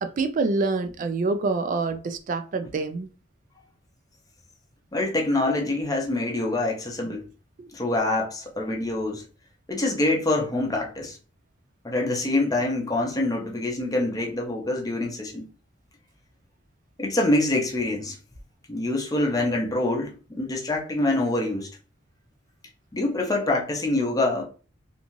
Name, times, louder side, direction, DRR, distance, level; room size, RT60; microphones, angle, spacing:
voice 1, 0.0-3.1 7.6-7.7, right 3 dB, 40° right, 0.3 m, -26 dB
voice 2, 4.9-7.3 7.7-9.2 9.7-11.2 11.8-15.5 17.0-18.2 18.7-21.7 22.9-24.4, left 2 dB, 20° left, 0.6 m, -25 dB
2.6 x 2.3 x 3.0 m
head